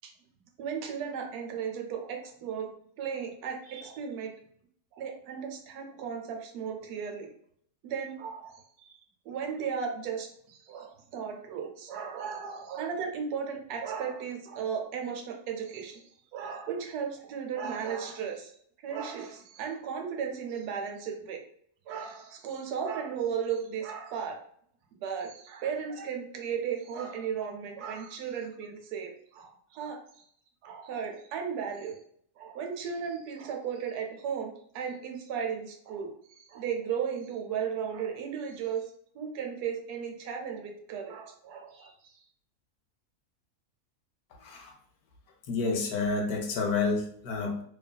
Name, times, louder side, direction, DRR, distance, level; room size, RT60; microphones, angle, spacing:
voice 1, 0.6-2.7 3.0-4.3 4.9-7.3 7.8-9.0 9.3-16.0 16.3-18.5 18.8-21.4 21.9-24.4 25.0-30.2 30.6-31.9 32.4-36.1 36.4-38.8 39.1-41.9, right 7 dB, 90° right, 3 dB, 1.1 m, -35 dB
voice 2, 44.4-44.7 45.5-47.6, left 4 dB, 75° left, 2 dB, 1.1 m, -29 dB
2.7 x 2.4 x 2.2 m, 0.63 s
omnidirectional pair, 1.6 m